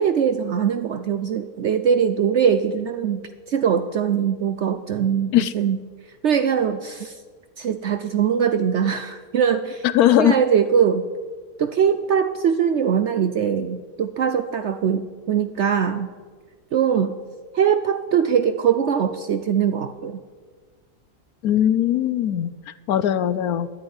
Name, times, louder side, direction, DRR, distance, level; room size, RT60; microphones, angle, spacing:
voice 1, 0.0-3.2 3.5-5.8 6.2-7.2 7.6-9.9 10.2-11.0 11.6-16.1 16.7-17.1 17.5-20.2, right 7 dB, 65° right, 9 dB, 0.7 m, -21 dB
voice 2, 9.8-10.4 21.4-22.5 22.9-23.7, left 11 dB, 70° left, 15 dB, 1.1 m, -19 dB
11.0 x 9.7 x 9.6 m, 1.5 s
omnidirectional pair, 1.7 m